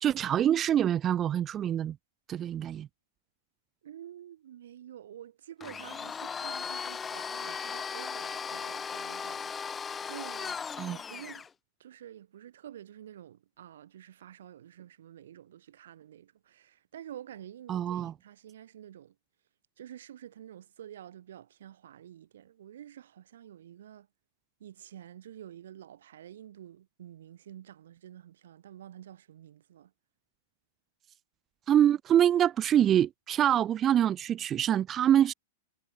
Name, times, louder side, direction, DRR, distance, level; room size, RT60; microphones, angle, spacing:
voice 1, 0.0-2.0 2.3-2.9 10.8-11.0 17.7-18.1 31.7-35.3, right 10 dB, 25° right, 0.6 m, -25 dB
voice 2, 3.8-11.5 11.8-19.1 19.8-24.1 24.6-29.9, right 11 dB, 70° right, 1.3 m, -49 dB
Domestic sounds home sounds, 5.6-11.5, left 6 dB, 15° left, 0.9 m, -37 dB
hypercardioid pair, 120°, 0 cm